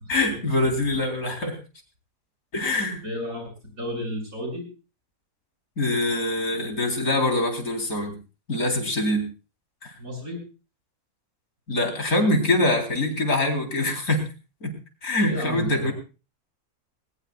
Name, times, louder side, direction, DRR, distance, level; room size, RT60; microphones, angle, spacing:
voice 1, 0.1-1.5 2.5-3.0 5.8-8.1 8.5-9.2 9.8-9.9 11.7-14.2 14.6-14.7 15.0-15.9, left 1 dB, 70° left, 4 dB, 4.2 m, -24 dB
voice 2, 3.0-4.6 10.0-10.4 15.3-15.9, left 1 dB, 70° right, 2 dB, 7.3 m, -32 dB
21.0 x 20.0 x 2.4 m, 0.33 s
omnidirectional pair, 1.6 m